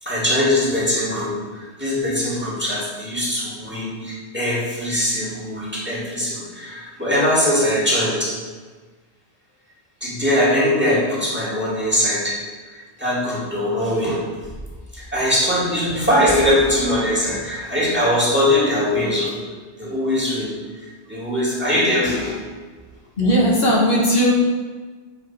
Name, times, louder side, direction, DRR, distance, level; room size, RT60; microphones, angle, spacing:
voice 1, 0.0-8.4 10.0-12.4 12.7-14.2 14.9-19.3 19.8-20.5 20.8-22.4, left 1 dB, 10° right, -7 dB, 2.3 m, -21 dB
voice 2, 23.2-24.3, equal, 65° left, -4 dB, 1.7 m, -17 dB
8.5 x 4.9 x 4.3 m, 1.4 s
omnidirectional pair, 1.1 m